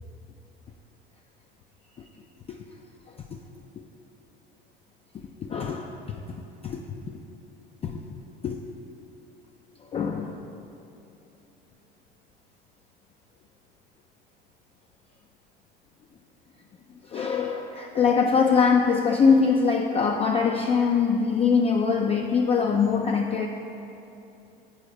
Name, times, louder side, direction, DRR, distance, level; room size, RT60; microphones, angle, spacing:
voice 1, 5.1-6.0 6.6-6.8 7.1-7.2 7.8-8.0 8.4-8.6 9.9-10.5 17.0-23.5, left 5 dB, 20° left, 2 dB, 0.3 m, -23 dB
7.8 x 4.1 x 4.9 m, 2.8 s
figure-of-eight pair, 65°, 29 cm